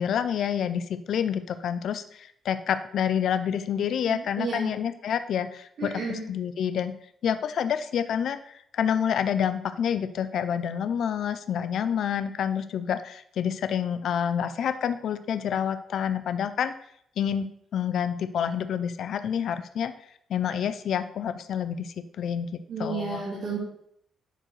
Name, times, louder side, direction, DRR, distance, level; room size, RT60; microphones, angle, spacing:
voice 1, 0.0-7.0 7.2-16.7 17.2-17.5 17.7-19.9 20.3-23.2, left 8 dB, 60° left, 11 dB, 0.4 m, -28 dB
voice 2, 4.1-4.7 5.8-6.2 22.7-23.6, right 4 dB, 60° right, -9 dB, 2.6 m, -32 dB
9.8 x 4.6 x 3.2 m, 0.69 s
cardioid pair, 175°, 0 cm